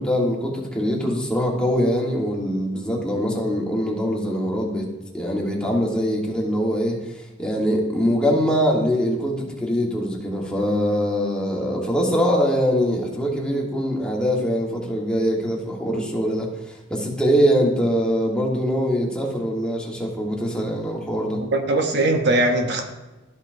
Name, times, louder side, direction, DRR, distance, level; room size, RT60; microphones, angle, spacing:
voice 1, 0.0-4.9 5.1-7.0 7.4-21.4, equal, 5° left, -2 dB, 1.3 m, -23 dB
voice 2, 21.4-22.9, right 2 dB, 65° right, 4 dB, 0.9 m, -20 dB
12.5 x 5.5 x 2.7 m, 1.1 s
head